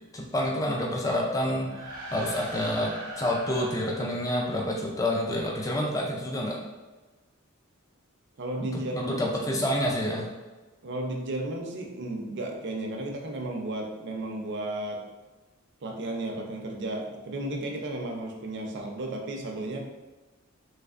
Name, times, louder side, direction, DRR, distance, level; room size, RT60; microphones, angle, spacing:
voice 1, 0.1-2.9 3.2-6.6 8.6-10.2, left 1 dB, 15° left, -1 dB, 0.4 m, -28 dB
sound 1, 1.6-5.3, right 2 dB, 80° right, 0.9 m, -42 dB
voice 2, 8.4-9.6 10.8-15.0 15.8-19.8, right 1 dB, 55° right, 1 dB, 0.6 m, -34 dB
3.2 x 3.2 x 2.4 m, 1.2 s
head